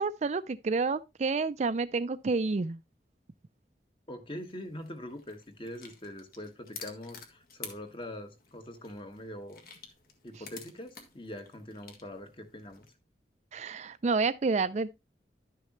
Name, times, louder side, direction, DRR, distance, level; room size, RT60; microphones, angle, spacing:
voice 1, 0.0-2.8 13.5-14.9, right 4 dB, 40° right, 0.4 m, -29 dB
voice 2, 4.1-9.6 10.2-12.9, left 1 dB, 30° left, 1.5 m, -43 dB
sound 1, 4.3-12.9, left 5 dB, 55° left, 1.8 m, -51 dB
11.5 x 6.5 x 3.0 m
head